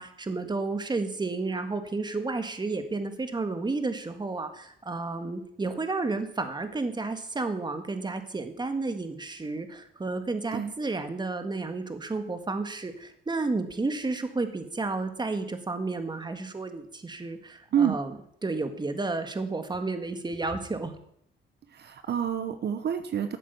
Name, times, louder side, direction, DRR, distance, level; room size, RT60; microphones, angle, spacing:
voice 1, 0.0-21.0, right 3 dB, 20° right, 8 dB, 1.7 m, -32 dB
voice 2, 21.8-23.4, right 8 dB, 55° right, 9 dB, 0.9 m, -27 dB
12.5 x 7.6 x 7.0 m, 0.69 s
cardioid pair, 90°, 20 cm